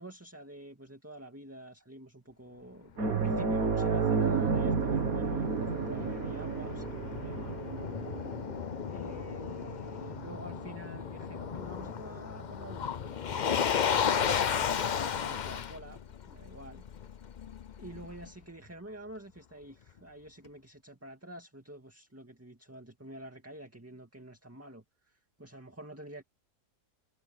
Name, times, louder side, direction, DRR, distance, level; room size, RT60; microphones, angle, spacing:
voice 1, 0.0-7.6 8.9-16.8 17.8-26.2, right 1 dB, 10° right, 2.1 m, -48 dB
sound 1, 3.0-11.9 12.3-12.4 14.5-14.6, right 5 dB, 65° right, 2.3 m, -32 dB
Motor vehicle (road), 3.2-18.3, left 7 dB, 65° left, 0.4 m, -35 dB
omnidirectional pair, 1.7 m